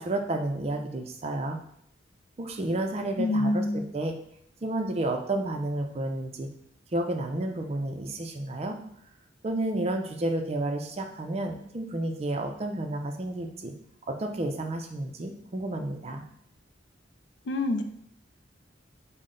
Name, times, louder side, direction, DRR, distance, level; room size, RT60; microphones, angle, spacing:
voice 1, 0.0-1.6 2.4-4.2 4.6-6.5 6.9-8.8 9.4-13.7 14.1-16.2, right 1 dB, 35° right, 4 dB, 0.4 m, -31 dB
voice 2, 3.2-3.9 17.5-17.8, left 2 dB, 65° left, 7 dB, 0.4 m, -26 dB
5.5 x 2.1 x 3.7 m, 0.71 s
head